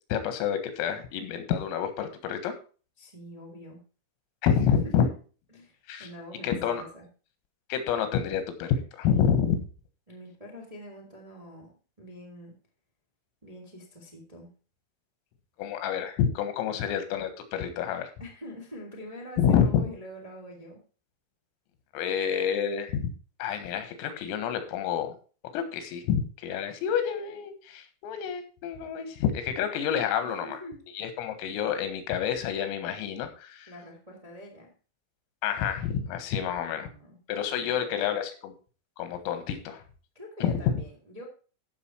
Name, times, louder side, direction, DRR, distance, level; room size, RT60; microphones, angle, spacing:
voice 1, 0.1-2.6 4.4-5.1 5.9-6.1 6.4-6.8 7.7-9.6 15.6-18.1 19.4-19.8 21.9-23.1 23.4-25.2 25.5-30.6 31.0-33.7 35.4-36.9 37.3-38.3 39.0-39.8 40.4-40.7, left 8 dB, 90° left, 9 dB, 4.2 m, -28 dB
voice 2, 3.0-3.8 4.7-5.1 5.5-7.1 10.1-11.7 12.0-12.6 13.4-14.5 18.2-20.8 30.2-30.8 33.7-34.7 36.3-37.2 37.6-38.1 40.1-41.2, equal, 15° right, 0 dB, 1.3 m, -45 dB
14.5 x 6.2 x 4.5 m, 0.37 s
omnidirectional pair, 6.0 m